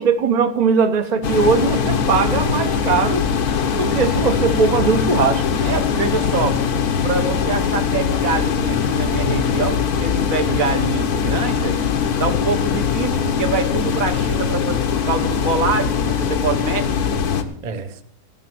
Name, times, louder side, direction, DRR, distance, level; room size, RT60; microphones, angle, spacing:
voice 1, 0.0-3.3 3.8-5.4 17.6-17.9, right 5 dB, 35° right, 7 dB, 0.9 m, -19 dB
sound 1, 1.2-17.4, left 7 dB, 75° left, 1.5 m, -21 dB
voice 2, 5.6-6.6 7.0-11.8 12.2-17.0, right 4 dB, 60° right, 6 dB, 1.5 m, -25 dB
15.5 x 6.3 x 7.7 m, 0.69 s
omnidirectional pair, 1.6 m